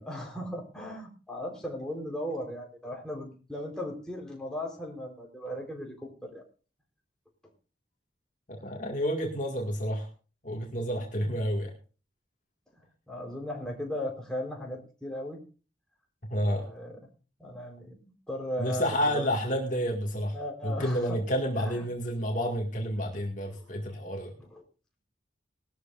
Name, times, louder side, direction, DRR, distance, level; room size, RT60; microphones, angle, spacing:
voice 1, 0.0-6.4 13.1-15.4 16.3-17.0 17.4-19.3 20.3-21.2 21.6-21.9 23.5-23.7 24.4-24.6, left 1 dB, 5° left, -1 dB, 4.1 m, -37 dB
voice 2, 8.5-10.1 10.4-11.7 16.3-16.7 18.6-20.3 20.6-24.3, equal, 40° left, 0 dB, 2.1 m, -30 dB
19.5 x 13.0 x 2.6 m, 0.36 s
head